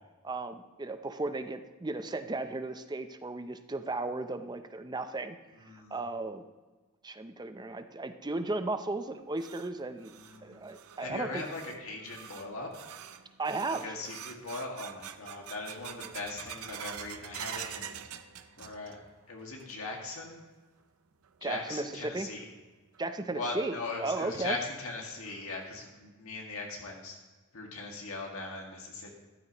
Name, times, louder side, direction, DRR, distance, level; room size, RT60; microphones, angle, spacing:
voice 1, 0.2-5.4 5.9-6.5 7.0-11.4 13.4-14.0 21.4-22.3 23.0-23.7 24.0-24.6, right 2 dB, 20° right, 9 dB, 0.6 m, -35 dB
voice 2, 5.5-6.0 10.1-10.5 11.0-12.7 13.7-18.0 18.6-19.0 19.3-20.4 21.4-22.5 23.3-27.2 27.5-29.1, left 2 dB, 65° left, 0 dB, 2.0 m, -39 dB
sound 1, 9.0-19.1 19.4-20.0 20.4-20.5 21.2-21.3 22.9-23.0 23.5-23.6 24.1-24.2 24.6-24.7 25.3-25.6, right 9 dB, 75° right, 0.6 m, -46 dB
13.5 x 12.0 x 3.0 m, 1.3 s
head